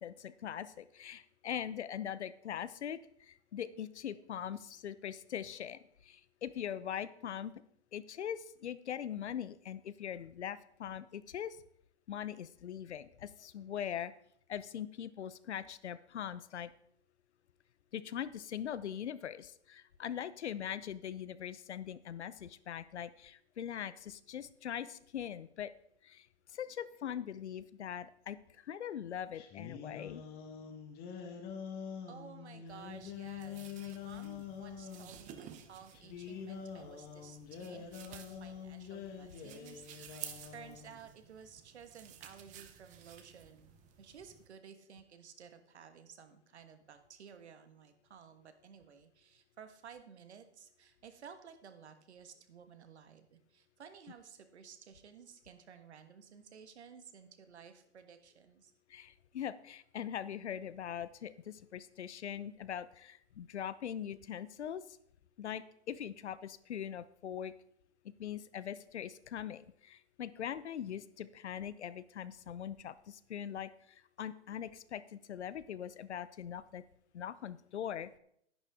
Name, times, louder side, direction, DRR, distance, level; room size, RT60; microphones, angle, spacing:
voice 1, 0.0-3.0 3.3-7.5 7.9-11.6 12.1-14.1 14.5-16.7 17.9-25.7 26.0-26.2 26.5-28.4 28.7-30.2 58.9-64.8 65.4-67.5 68.2-73.7 74.2-76.8 77.1-78.1, left 9 dB, 75° left, 16 dB, 0.7 m, -41 dB
sound 1, 29.3-35.1 35.9-41.0, left 7 dB, 25° left, 1.5 m, -46 dB
voice 2, 32.1-43.7 44.0-58.7, right 7 dB, 70° right, 8 dB, 1.5 m, -55 dB
sound 2, 32.7-44.5, right 9 dB, 20° right, 0.9 m, -54 dB
10.5 x 9.9 x 3.6 m, 0.70 s
hypercardioid pair, 125°, 35 cm